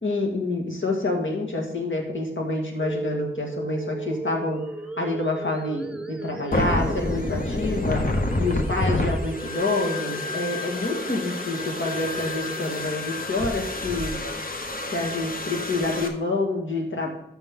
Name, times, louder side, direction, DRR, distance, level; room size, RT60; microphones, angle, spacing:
voice 1, 0.0-4.6 5.0-8.0 8.4-14.2 14.9-17.1, left 2 dB, 65° left, 0 dB, 2.1 m, -27 dB
sound 1, 2.8-12.8, right 2 dB, 5° right, 0.9 m, -36 dB
sound 2, 6.5-16.1, left 2 dB, 45° left, 1.1 m, -29 dB
13.0 x 5.8 x 3.8 m, 0.82 s
wide cardioid pair, 75°, 21 cm